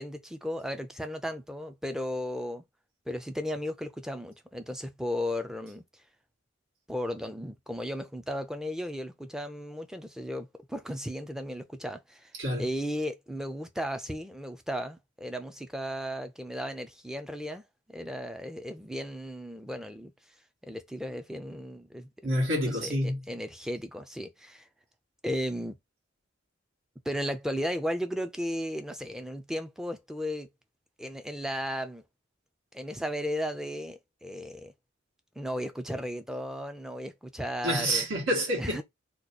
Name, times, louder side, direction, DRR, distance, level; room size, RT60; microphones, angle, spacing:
voice 1, 0.0-2.6 3.1-5.8 6.9-12.3 12.6-17.6 17.9-20.1 20.6-22.1 22.8-24.7 25.2-25.8 27.1-30.5 31.0-32.0 32.7-34.7 35.4-38.1 38.6-38.8, equal, 5° right, 0.4 m, -35 dB
voice 2, 22.2-23.2 37.6-38.8, equal, 75° right, 1.5 m, -28 dB
3.0 x 2.2 x 4.1 m
head